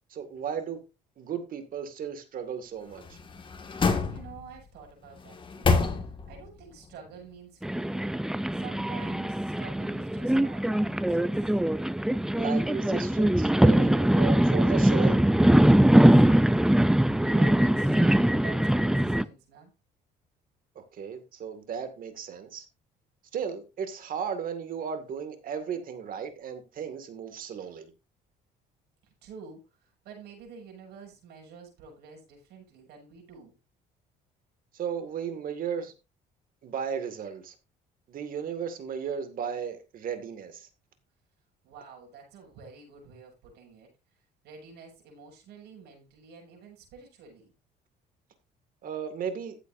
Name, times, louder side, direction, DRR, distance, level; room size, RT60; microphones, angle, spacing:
voice 1, 0.1-0.8 1.2-3.2 12.4-15.2 20.8-22.7 23.3-27.9 34.7-35.9 36.6-37.5 38.1-40.7 48.8-49.6, right 7 dB, 55° right, 2.1 m, -35 dB
sound 1, 2.9-4.6 5.2-6.5 6.8-6.9, left 4 dB, 30° left, 1.9 m, -28 dB
voice 2, 4.1-5.8 6.0-8.1 8.5-11.5 15.9-19.7 29.2-33.5 41.6-43.9 44.4-47.5, right 5 dB, 80° right, 7.1 m, -48 dB
sound 2, 7.6-19.2, right 1 dB, 5° right, 0.4 m, -22 dB
15.0 x 8.2 x 2.6 m
cardioid pair, 110°, 17 cm